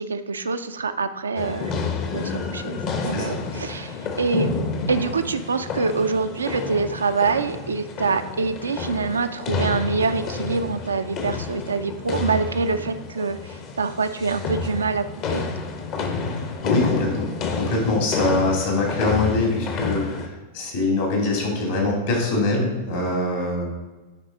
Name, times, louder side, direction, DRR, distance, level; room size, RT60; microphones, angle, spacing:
voice 1, 0.0-1.7 2.1-2.8 3.0-4.6 4.9-15.4, right 4 dB, 75° right, 8 dB, 0.4 m, -25 dB
sound 1, 1.4-20.3, left 4 dB, 40° left, 0.9 m, -29 dB
voice 2, 3.1-3.8 16.2-17.3 17.5-23.7, left 2 dB, 60° left, -1 dB, 2.4 m, -24 dB
9.8 x 4.0 x 3.8 m, 1.2 s
figure-of-eight pair, 90°, 0 cm